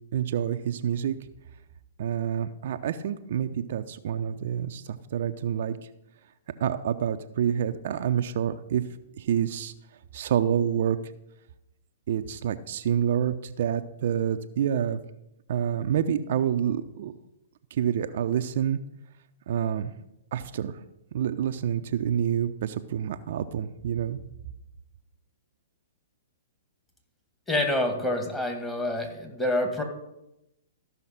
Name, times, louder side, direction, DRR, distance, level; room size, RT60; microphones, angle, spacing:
voice 1, 0.1-1.1 2.0-5.8 6.6-8.8 9.2-9.7 10.1-11.0 12.1-15.0 15.5-17.1 17.7-18.8 19.5-19.9 20.3-20.8 21.1-24.2, right 9 dB, 60° right, 8 dB, 0.6 m, -27 dB
voice 2, 27.5-29.8, left 1 dB, 10° left, 3 dB, 1.9 m, -27 dB
14.0 x 5.7 x 5.7 m, 0.88 s
hypercardioid pair, 125°, 0 cm